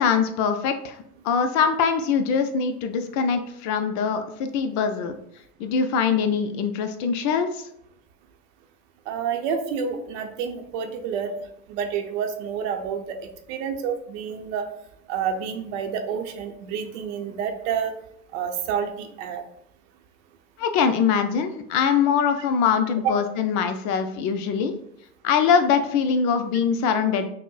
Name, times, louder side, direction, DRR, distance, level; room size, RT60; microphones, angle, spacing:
voice 1, 0.0-5.2 5.6-7.6 20.6-24.7 25.2-27.3, left 6 dB, 45° left, 8 dB, 0.4 m, -23 dB
voice 2, 9.1-11.4 11.7-14.6 15.1-17.9 18.3-19.4 23.0-23.2, right 7 dB, 60° right, 5 dB, 0.7 m, -29 dB
6.0 x 2.1 x 2.3 m, 0.74 s
hypercardioid pair, 90°, 42 cm